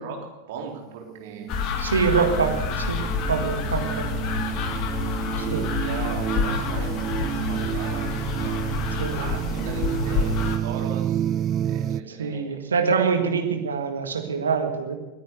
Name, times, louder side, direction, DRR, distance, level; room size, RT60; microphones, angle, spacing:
voice 1, 0.0-1.5 3.3-3.7 5.4-11.2 11.6-12.7, right 6 dB, 55° right, 0 dB, 3.4 m, -38 dB
sound 1, 0.9-12.0, right 10 dB, 30° right, 0.4 m, -30 dB
sound 2, 1.5-10.6, left 5 dB, 40° left, 1.6 m, -28 dB
voice 2, 1.8-3.0 3.3-4.1 5.5-5.7 9.0-9.3 12.1-15.0, right 5 dB, 70° right, 6 dB, 1.8 m, -25 dB
20.5 x 9.4 x 6.6 m, 1.1 s
figure-of-eight pair, 90°, 0 cm